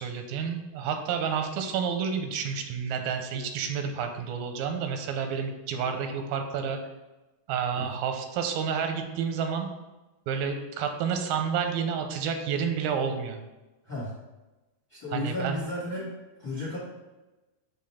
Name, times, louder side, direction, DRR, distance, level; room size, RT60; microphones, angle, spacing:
voice 1, 0.0-6.8 7.5-9.7 10.3-13.4 15.1-15.6, right 6 dB, 85° right, 5 dB, 2.5 m, -30 dB
voice 2, 14.9-16.1 16.4-16.8, left 1 dB, 55° left, -6 dB, 1.0 m, -33 dB
6.7 x 3.7 x 5.6 m, 1.1 s
omnidirectional pair, 4.3 m